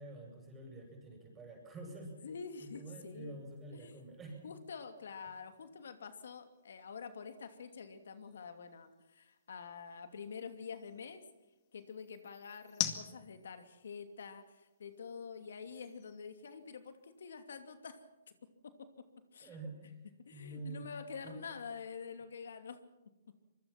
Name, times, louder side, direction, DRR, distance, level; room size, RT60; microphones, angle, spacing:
voice 1, 0.0-2.1 2.6-4.4 19.4-20.0 20.3-20.9 21.2-21.4, right 2 dB, 15° right, 1 dB, 7.7 m, -47 dB
voice 2, 2.2-3.4 3.7-4.0 4.4-11.2 11.7-18.0 18.6-19.0 19.3-19.6 20.2-22.8, left 5 dB, 75° left, 8 dB, 2.7 m, -47 dB
sound 1, 3.0-17.2, left 13 dB, 35° left, 2.2 m, -49 dB
25.5 x 21.5 x 6.0 m, 1.0 s
hypercardioid pair, 145°, 0 cm